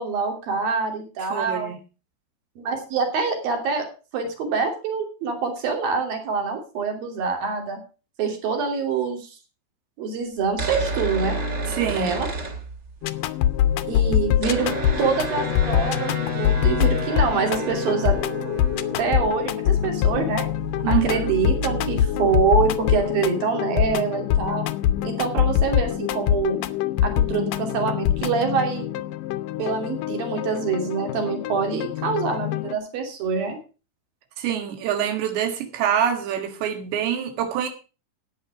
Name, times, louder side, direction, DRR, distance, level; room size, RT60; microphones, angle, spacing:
voice 1, 0.0-1.7 2.6-3.9 4.1-7.8 8.2-9.4 10.0-11.4 11.9-12.3 13.9-14.7 15.0-18.2 19.0-20.5 20.9-24.6 25.0-26.6 27.0-28.9 29.6-33.6, right 5 dB, 60° right, 4 dB, 4.5 m, -25 dB
voice 2, 1.2-1.8 11.7-12.1 20.8-21.3 34.4-37.7, right 9 dB, 90° right, 6 dB, 3.8 m, -25 dB
sound 1, 10.4-13.2 13.4-13.5 13.7-23.1, right 2 dB, 30° right, 2.5 m, -32 dB
sound 2, 13.0-32.8, left 11 dB, 80° left, 1.9 m, -24 dB
14.0 x 9.0 x 4.9 m, 0.33 s
omnidirectional pair, 4.9 m